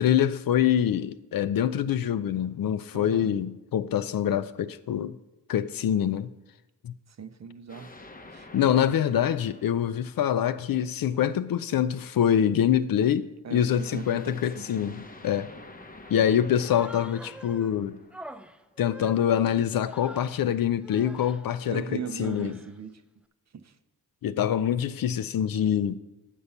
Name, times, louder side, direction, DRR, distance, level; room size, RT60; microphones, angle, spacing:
voice 1, 0.0-5.2 5.5-6.3 6.8-6.9 8.5-15.5 16.1-18.0 18.8-22.6 24.2-26.0, left 9 dB, 65° left, 0.5 m, -25 dB
voice 2, 2.9-3.4 7.1-7.9 8.3-8.5 13.4-14.7 16.1-16.4 21.6-23.0 23.5-23.8, right 6 dB, 45° right, 0.6 m, -39 dB
sound 1, 7.7-10.8 13.7-18.9, left 2 dB, 20° left, 0.7 m, -49 dB
Human voice, 16.5-17.7 18.1-20.4 20.8-21.4 22.0-22.8, right 1 dB, 5° right, 0.4 m, -46 dB
6.7 x 5.5 x 7.0 m
cardioid pair, 55°, 38 cm